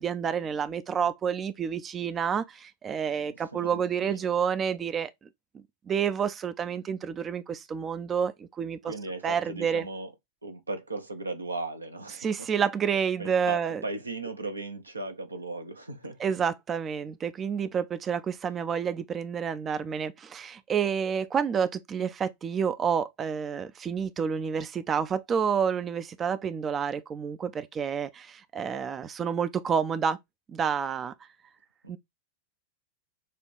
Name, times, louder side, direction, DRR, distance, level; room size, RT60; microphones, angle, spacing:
voice 1, 0.0-5.1 5.9-8.9 9.2-9.8 12.2-13.8 16.2-30.2 30.5-31.1 31.9-32.0, right 7 dB, 25° right, 0.3 m, -29 dB
voice 2, 3.3-4.2 8.8-10.1 10.4-12.5 13.2-16.2 31.8-31.9, right 2 dB, 80° right, 0.7 m, -37 dB
6.6 x 2.3 x 3.3 m
figure-of-eight pair, 90°, 0 cm